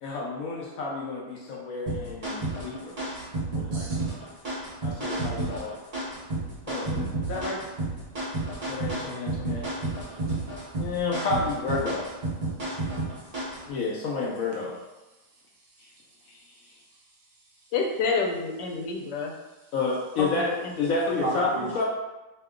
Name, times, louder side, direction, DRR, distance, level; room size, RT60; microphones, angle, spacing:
voice 1, 0.0-3.0 3.5-4.1 4.8-5.7 6.7-7.6 8.7-9.7 10.8-12.1 13.7-14.7 19.7-20.5 20.8-21.8, left 3 dB, 70° left, -3 dB, 0.8 m, -30 dB
sound 1, 1.9-13.7, right 2 dB, 35° right, 0.9 m, -31 dB
voice 2, 15.2-17.7 19.2-19.7 21.2-21.7, right 2 dB, 55° right, -5 dB, 0.5 m, -39 dB
voice 3, 17.7-19.3 20.2-20.9 21.2-21.3, left 4 dB, 85° left, 1 dB, 1.2 m, -29 dB
2.9 x 2.1 x 3.5 m, 1.1 s
omnidirectional pair, 1.8 m